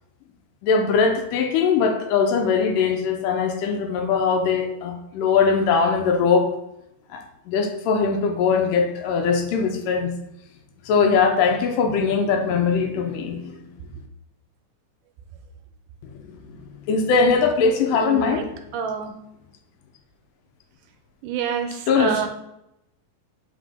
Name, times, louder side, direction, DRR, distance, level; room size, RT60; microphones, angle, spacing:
voice 1, 0.6-6.5 7.1-10.1 10.9-13.5 16.0-16.2 16.5-16.6 16.9-18.4 21.9-22.3, left 5 dB, 80° left, 5 dB, 2.3 m, -21 dB
voice 2, 17.9-18.5 18.7-19.1 21.2-22.3, right 7 dB, 80° right, 6 dB, 2.1 m, -27 dB
7.4 x 4.3 x 3.6 m, 0.83 s
omnidirectional pair, 3.9 m